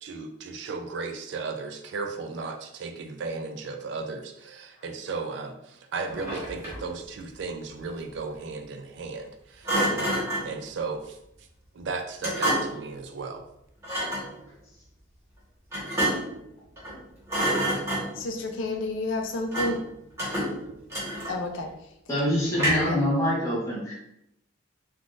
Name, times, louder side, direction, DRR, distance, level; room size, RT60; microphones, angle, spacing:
voice 1, 0.0-11.2 11.7-13.4, right 4 dB, 60° right, 6 dB, 0.3 m, -35 dB
Thump thud, 6.1-6.9 9.6-10.5 12.2-12.9 13.8-14.3 15.7-16.4 16.8-17.0 17.3-18.3 19.5-19.9 20.2-21.6 22.5-23.0, right 1 dB, 15° right, 1.2 m, -28 dB
voice 2, 18.2-19.8 21.3-21.7 22.8-23.0, left 2 dB, 75° left, 3 dB, 0.4 m, -30 dB
voice 3, 22.1-23.9, equal, 15° left, -6 dB, 1.0 m, -25 dB
3.5 x 2.4 x 2.4 m, 0.79 s
head